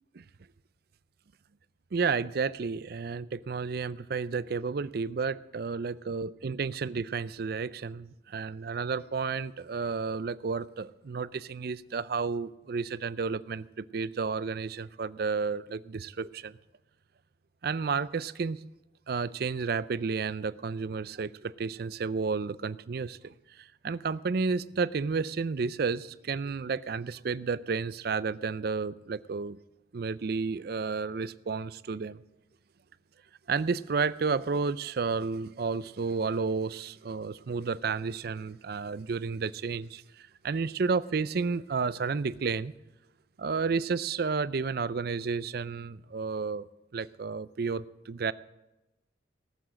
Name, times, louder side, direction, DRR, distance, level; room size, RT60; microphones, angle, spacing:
voice 1, 1.9-16.6 17.6-18.6 19.1-29.6 29.9-32.2 33.5-42.7 43.4-46.7 46.9-48.3, right 4 dB, 55° right, 0.4 m, -31 dB
18.0 x 7.2 x 7.5 m
head